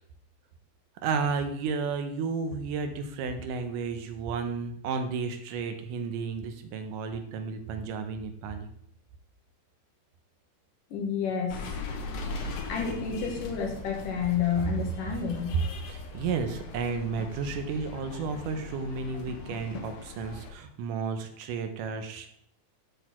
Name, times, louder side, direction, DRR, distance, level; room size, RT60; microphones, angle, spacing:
voice 1, 1.0-8.7 15.9-22.3, right 5 dB, 85° right, 7 dB, 2.4 m, -32 dB
voice 2, 10.9-11.8 12.7-15.6, left 6 dB, 85° left, 1 dB, 3.2 m, -30 dB
sound 1, 11.5-20.5, left 3 dB, 65° left, 1.8 m, -40 dB
12.0 x 4.2 x 4.4 m, 0.68 s
omnidirectional pair, 3.6 m